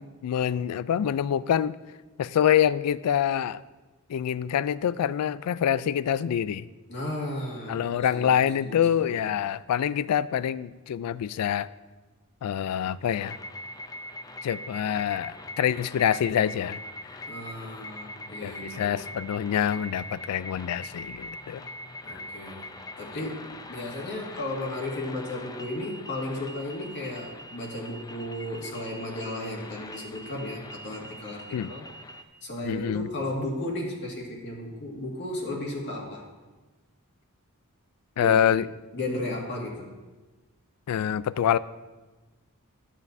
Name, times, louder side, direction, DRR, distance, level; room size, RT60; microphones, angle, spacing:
voice 1, 0.0-1.7 2.2-3.6 4.1-6.7 7.7-11.7 12.4-13.4 14.4-16.8 18.4-21.6 22.1-22.2 31.5-31.7 32.6-33.1 38.2-38.7 40.9-41.6, left 9 dB, 85° left, 17 dB, 0.3 m, -26 dB
voice 2, 6.9-9.2 17.3-19.1 22.1-22.7 23.0-31.8 32.4-36.2 38.2-38.4 38.9-39.9, left 1 dB, 50° left, -2 dB, 1.9 m, -34 dB
sound 1, 13.2-32.2, left 1 dB, 15° left, 0.5 m, -42 dB
14.0 x 7.4 x 2.6 m, 1.2 s
head